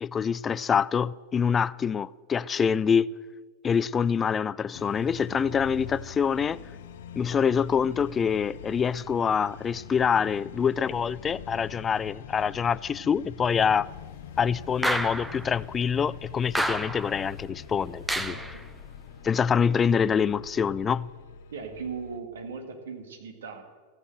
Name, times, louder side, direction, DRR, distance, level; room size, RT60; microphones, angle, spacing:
voice 1, 0.0-3.1 3.6-6.6 7.2-13.9 14.4-18.4 19.2-21.1, left 7 dB, 20° left, 0.3 m, -25 dB
sound 1, 4.7-22.2, left 7 dB, 55° left, 0.7 m, -44 dB
sound 2, 14.8-15.5 16.5-17.2 18.1-18.6, right 1 dB, 5° right, 0.7 m, -29 dB
voice 2, 18.3-18.6 21.5-23.6, right 5 dB, 65° right, 1.9 m, -38 dB
14.0 x 9.1 x 7.8 m
figure-of-eight pair, 90°, 0 cm